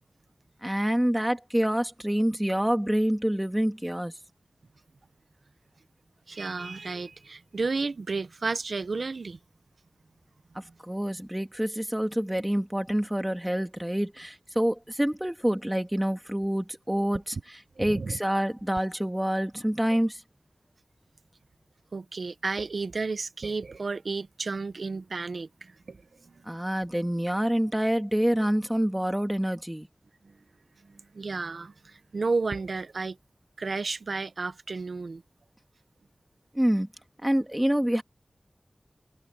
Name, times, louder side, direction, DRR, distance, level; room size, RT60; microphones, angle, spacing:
voice 1, 0.6-4.1 10.5-20.2 26.5-29.9 36.5-36.9 37.2-38.0, equal, 10° right, 2.4 m, -27 dB
voice 2, 6.3-9.4 17.8-18.2 19.9-20.0 21.9-26.4 30.2-30.3 30.8-33.2 33.6-35.2, right 4 dB, 90° right, 0.8 m, -32 dB
wide cardioid pair, 65°, 0 cm